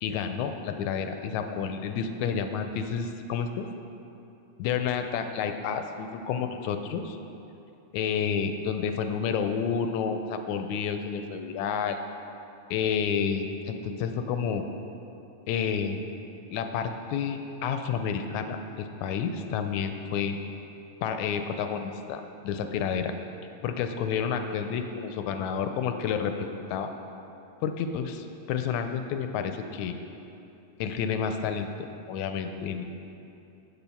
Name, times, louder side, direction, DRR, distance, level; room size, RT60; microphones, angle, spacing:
voice 1, 0.0-3.7 4.6-7.2 7.9-12.0 12.7-14.6 15.5-16.0 16.5-20.4 21.0-23.1 23.6-26.9 27.6-29.9 30.8-31.7 32.1-32.8, left 7 dB, 80° left, 7 dB, 1.8 m, -30 dB
8.1 x 6.9 x 5.7 m, 2.8 s
omnidirectional pair, 3.5 m